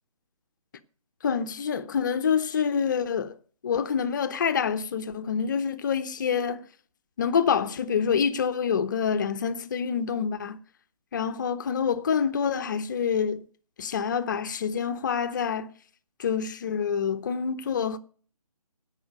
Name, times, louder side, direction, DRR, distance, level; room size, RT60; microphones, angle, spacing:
voice 1, 1.2-3.3 3.6-6.7 7.2-10.6 11.1-13.4 13.8-15.7 16.2-18.0, left 7 dB, 30° left, 0.8 m, -27 dB
16.5 x 5.7 x 6.6 m
figure-of-eight pair, 155°, 20 cm